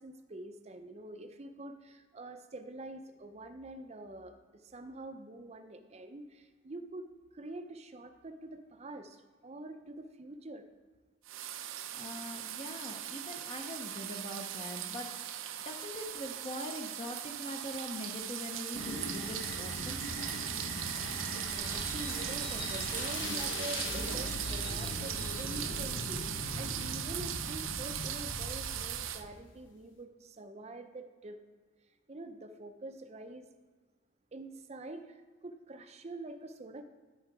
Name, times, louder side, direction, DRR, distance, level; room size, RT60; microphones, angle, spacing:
voice 1, 0.0-7.1 7.3-10.7 21.3-31.4 31.9-33.5 34.3-36.8, right 2 dB, 30° right, 7 dB, 0.5 m, -46 dB
sound 1, 11.3-29.2, right 11 dB, 75° right, 0.6 m, -39 dB
voice 2, 11.9-20.0, left 1 dB, 30° left, 3 dB, 0.6 m, -43 dB
sound 2, 18.7-29.3, left 2 dB, 65° left, 1.0 m, -40 dB
12.5 x 4.6 x 4.7 m, 1.4 s
head